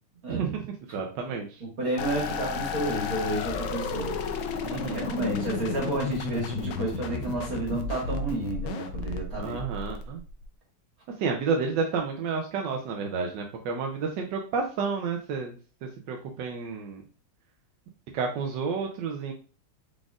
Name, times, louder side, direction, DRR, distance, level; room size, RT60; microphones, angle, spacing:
voice 1, 0.3-0.7 0.9-1.6 4.6-5.1 9.4-10.2 11.2-15.5 16.1-17.0 18.1-19.3, right 5 dB, 70° right, 1 dB, 1.2 m, -30 dB
voice 2, 1.6-4.1 4.9-9.6, right 2 dB, 45° right, -2 dB, 2.1 m, -31 dB
sound 1, 2.0-10.4, left 5 dB, 80° left, 1.4 m, -33 dB
4.9 x 4.1 x 2.4 m, 0.38 s
omnidirectional pair, 2.2 m